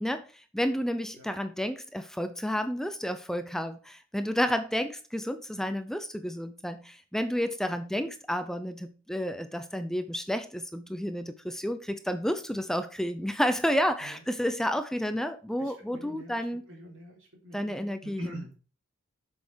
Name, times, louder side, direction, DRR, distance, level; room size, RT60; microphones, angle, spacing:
voice 1, 0.0-16.6 17.5-18.4, equal, ahead, 0.6 m, -31 dB
voice 2, 15.6-18.6, equal, 70° right, 3.8 m, -46 dB
8.2 x 6.4 x 5.6 m
head